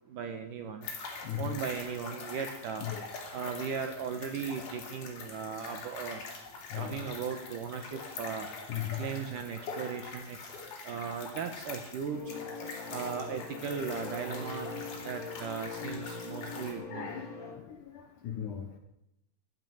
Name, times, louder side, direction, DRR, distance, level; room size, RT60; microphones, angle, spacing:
voice 1, 0.1-0.9 1.4-2.9 3.3-6.2 6.8-8.5 9.0-10.4 10.8-12.3 12.9-14.8 15.0-17.1, right 6 dB, 70° right, 7 dB, 2.1 m, -37 dB
sound 1, 0.8-16.7, left 4 dB, 50° left, 4.1 m, -44 dB
voice 2, 1.2-1.6 2.8-3.2 6.7-7.1 8.7-9.0 12.4-12.7 16.9-18.8, left 10 dB, 70° left, 5 dB, 2.0 m, -38 dB
sound 2, 12.1-17.5, left 3 dB, 30° left, 2.9 m, -42 dB
15.0 x 11.0 x 7.8 m, 0.86 s
omnidirectional pair, 4.9 m